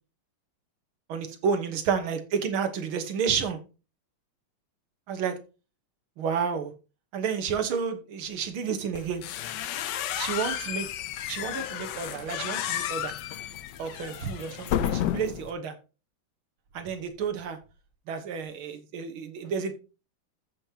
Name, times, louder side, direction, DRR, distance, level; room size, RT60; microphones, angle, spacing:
voice 1, 1.1-3.6 5.1-5.4 6.2-6.7 7.1-9.2 10.1-10.9 11.3-13.1 13.8-15.8 16.7-17.6 18.1-19.7, right 6 dB, 80° right, 2.0 m, -30 dB
sound 1, 8.9-15.5, left 11 dB, 70° left, 1.2 m, -32 dB
14.0 x 5.3 x 2.8 m
omnidirectional pair, 2.2 m